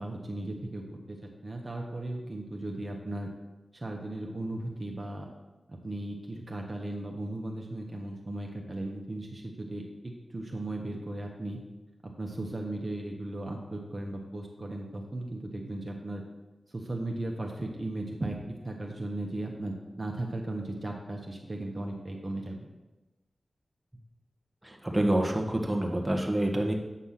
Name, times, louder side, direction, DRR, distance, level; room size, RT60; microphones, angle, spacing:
voice 1, 0.0-3.3 3.7-5.3 5.7-11.6 12.0-16.2 16.7-18.4 18.6-22.7, right 1 dB, 40° right, 0 dB, 1.4 m, -36 dB
voice 2, 24.6-26.7, right 1 dB, 10° right, 0 dB, 1.7 m, -27 dB
8.4 x 5.9 x 5.9 m, 1.1 s
cardioid pair, 50°, 0 cm